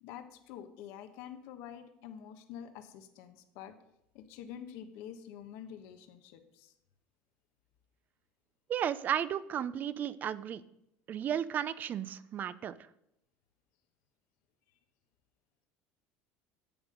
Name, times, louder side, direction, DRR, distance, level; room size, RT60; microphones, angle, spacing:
voice 1, 0.0-3.7 4.1-6.7, left 9 dB, 75° left, 7 dB, 1.2 m, -47 dB
voice 2, 8.7-10.6 11.1-12.7, right 9 dB, 35° right, 16 dB, 0.5 m, -34 dB
11.0 x 8.4 x 5.2 m, 0.80 s
cardioid pair, 135°, 5 cm